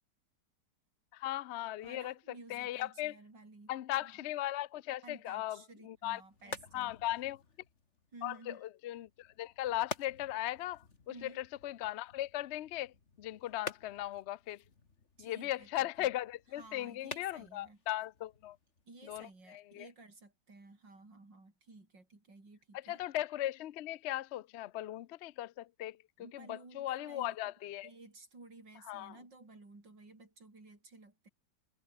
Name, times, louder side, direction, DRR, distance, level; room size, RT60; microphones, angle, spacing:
voice 1, 1.1-2.1 2.5-3.2 3.7-6.2 6.7-7.4 8.2-14.6 15.2-18.6 19.0-19.9 22.7-27.9 28.8-29.2, left 14 dB, 75° left, 0.6 m, -38 dB
voice 2, 1.8-3.7 4.0-4.3 5.0-6.9 8.1-8.7 11.1-11.4 15.2-16.1 16.5-17.8 18.9-23.0 26.2-27.3 27.8-31.3, right 3 dB, 80° right, 6.7 m, -54 dB
sound 1, 5.9-19.4, left 4 dB, 40° left, 2.4 m, -50 dB
omnidirectional pair, 1.9 m